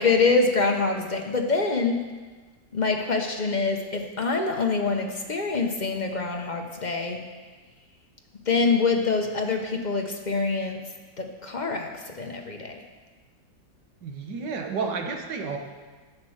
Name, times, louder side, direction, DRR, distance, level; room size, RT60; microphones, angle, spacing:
voice 1, 0.0-2.0 2.7-7.2 8.5-10.8 11.2-12.8, left 4 dB, 40° left, 3 dB, 0.6 m, -25 dB
voice 2, 14.0-15.6, right 5 dB, 70° right, 3 dB, 1.7 m, -31 dB
10.5 x 7.5 x 6.4 m, 1.4 s
omnidirectional pair, 1.9 m